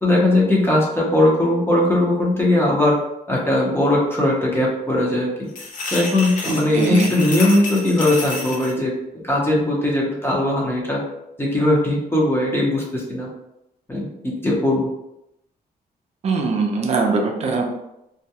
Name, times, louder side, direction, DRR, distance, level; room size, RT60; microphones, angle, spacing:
voice 1, 0.0-3.0 3.3-5.3 5.9-11.0 11.4-13.3 13.9-14.9, left 1 dB, 15° left, -4 dB, 0.6 m, -19 dB
sound 1, 5.5-8.7, left 2 dB, 55° left, 0.6 m, -30 dB
voice 2, 6.4-7.2 16.2-17.6, right 4 dB, 40° right, 1 dB, 0.5 m, -22 dB
2.3 x 2.1 x 2.8 m, 0.85 s
cardioid pair, 125°, 16 cm